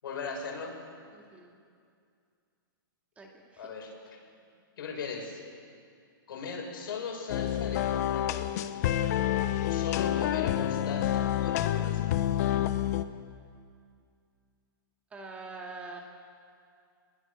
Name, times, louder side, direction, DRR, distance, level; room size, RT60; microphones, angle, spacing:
voice 1, 0.0-0.8 3.6-3.9 4.8-5.4 6.3-8.5 9.6-12.2, left 5 dB, 70° left, 1 dB, 6.7 m, -38 dB
voice 2, 1.1-1.6 3.2-3.7 15.1-16.0, right 3 dB, 10° right, 0 dB, 2.2 m, -44 dB
sound 1, 7.3-13.0, left 12 dB, 45° left, 1.1 m, -28 dB
26.5 x 20.5 x 6.6 m, 2.3 s
hypercardioid pair, 155°, 12 cm